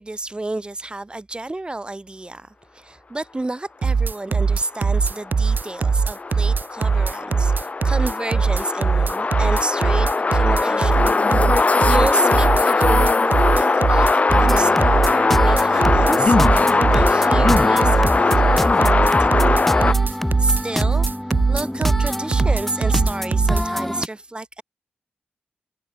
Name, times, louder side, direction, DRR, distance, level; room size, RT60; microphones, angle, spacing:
voice 1, 0.0-7.5 7.8-11.1 11.9-18.3 18.6-18.9 19.2-19.7 20.4-21.1 21.5-24.6, right 2 dB, 25° right, 3.1 m, -30 dB
sound 1, 3.8-23.6, right 5 dB, 55° right, 0.6 m, -20 dB
sound 2, 5.0-19.9, left 3 dB, 40° left, 0.5 m, -20 dB
sound 3, 14.3-24.1, equal, 5° left, 0.9 m, -26 dB
cardioid pair, 50°, 4 cm